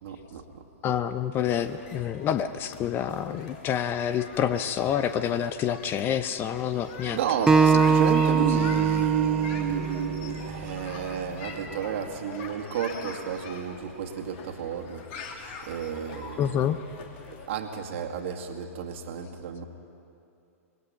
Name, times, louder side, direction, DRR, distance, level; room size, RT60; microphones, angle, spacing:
voice 1, 0.0-0.6 7.1-15.0 15.7-16.5 17.5-19.6, right 8 dB, 55° right, 2 dB, 2.2 m, -31 dB
voice 2, 0.8-7.2 16.4-16.8, left 9 dB, 25° left, 12 dB, 0.8 m, -27 dB
sound 1, 1.5-17.5, left 4 dB, 45° left, 3.0 m, -43 dB
Acoustic guitar, 7.5-10.8, right 5 dB, 10° right, 0.7 m, -23 dB
26.0 x 21.0 x 5.8 m, 2.6 s
figure-of-eight pair, 110°, 8 cm